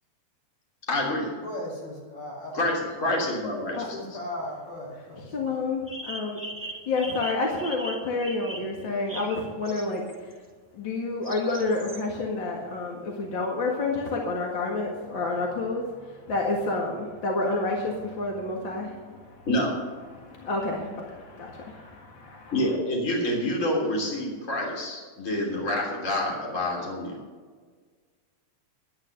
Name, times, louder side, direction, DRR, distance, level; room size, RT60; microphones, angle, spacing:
voice 1, 0.9-1.3 2.5-3.8 19.5-19.7 22.5-27.2, left 1 dB, 25° left, -2 dB, 3.4 m, -27 dB
voice 2, 1.4-2.6 3.9-5.3, left 1 dB, 70° left, -3 dB, 6.7 m, -37 dB
sound 1, 2.9-3.0 5.9-10.3 11.2-12.0, right 1 dB, 15° right, 0.7 m, -40 dB
voice 3, 5.2-6.4 6.9-10.0 10.7-19.4 20.1-22.5, left 3 dB, 45° left, -1 dB, 2.2 m, -29 dB
12.0 x 11.0 x 6.6 m, 1.5 s
omnidirectional pair, 3.4 m